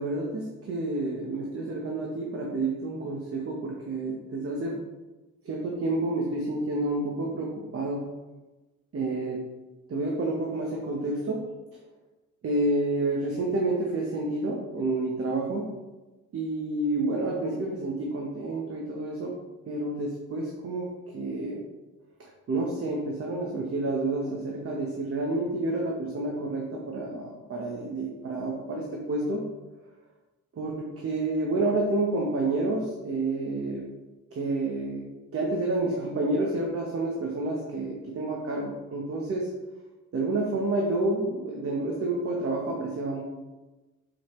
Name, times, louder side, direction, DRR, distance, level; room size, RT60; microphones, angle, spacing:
voice 1, 0.0-4.8 5.4-8.0 8.9-9.4 9.9-11.4 12.4-15.7 16.3-19.3 19.7-20.9 21.1-21.6 22.5-29.4 30.6-33.8 34.3-35.0 35.3-39.5 40.1-43.2, right 2 dB, 50° right, -1 dB, 1.1 m, -29 dB
6.4 x 4.6 x 3.2 m, 1.1 s
cardioid pair, 90°, 30 cm